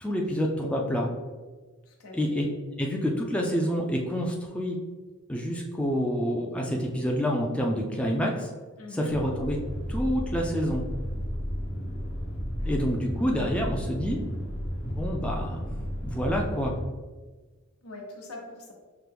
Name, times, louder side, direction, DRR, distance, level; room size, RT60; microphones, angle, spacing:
voice 1, 0.0-1.1 2.1-2.5 2.8-4.8 5.3-8.5 8.9-9.6 9.9-10.8 12.6-14.2 14.8-15.6 16.0-16.7, equal, 5° left, 0 dB, 0.4 m, -28 dB
voice 2, 1.8-2.5 8.8-9.1 12.6-12.8 17.8-18.7, left 1 dB, 85° left, -1 dB, 0.9 m, -43 dB
sound 1, 9.1-16.9, equal, 60° left, 1.0 m, -33 dB
5.9 x 2.2 x 3.4 m, 1.3 s
head